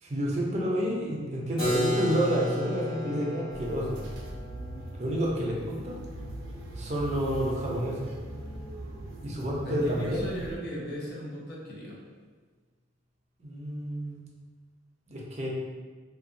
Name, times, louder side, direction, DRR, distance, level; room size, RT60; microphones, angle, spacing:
voice 1, 0.0-4.0 5.0-6.0 6.8-8.1 9.2-10.2 13.4-14.2 15.1-15.5, equal, 35° right, -3 dB, 0.5 m, -29 dB
Keyboard (musical), 1.6-7.2, equal, 25° left, 1.3 m, -34 dB
sound 1, 3.5-10.6, right 1 dB, 90° right, 0.4 m, -41 dB
voice 2, 9.6-12.0, equal, 55° left, -4 dB, 0.6 m, -37 dB
2.8 x 2.2 x 2.5 m, 1.5 s
head